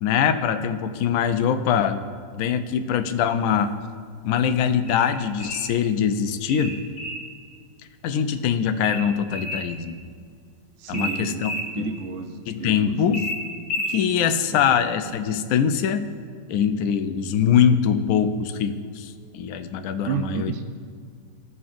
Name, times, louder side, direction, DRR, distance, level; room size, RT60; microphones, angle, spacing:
voice 1, 0.0-2.1 2.3-3.7 4.2-6.8 8.0-10.0 10.9-11.5 11.8-11.9 12.5-13.3 13.9-16.1 16.5-20.5, left 8 dB, 70° left, 8 dB, 0.8 m, -23 dB
sound 1, 4.9-5.7 6.5-7.3 8.8-9.7 10.9-11.7 13.1-14.0, equal, 40° left, 1.9 m, -31 dB
voice 2, 10.8-11.4 11.7-13.2 14.5-14.8 20.0-20.8, right 7 dB, 70° right, 5 dB, 0.7 m, -32 dB
16.0 x 5.5 x 2.5 m, 2.1 s
omnidirectional pair, 1.9 m